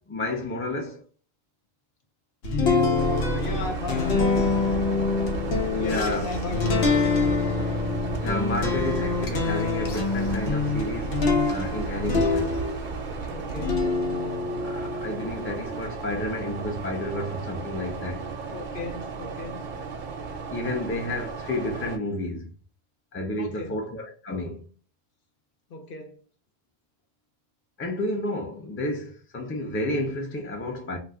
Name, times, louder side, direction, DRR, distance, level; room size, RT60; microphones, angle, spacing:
voice 1, 0.1-1.0 5.7-6.3 8.2-11.2 11.5-12.6 14.6-18.3 20.5-22.5 23.1-24.7 27.8-31.0, left 1 dB, 20° left, 0.4 m, -31 dB
sound 1, 2.4-13.0 13.5-15.8, left 4 dB, 90° left, 0.9 m, -26 dB
voice 2, 2.6-4.1 5.7-7.7 13.3-13.9 18.5-19.6 23.4-23.7 25.7-26.2, left 3 dB, 60° left, 0.8 m, -36 dB
sound 2, 2.9-22.0, right 4 dB, 60° right, 0.6 m, -34 dB
2.4 x 2.3 x 3.5 m
omnidirectional pair, 1.0 m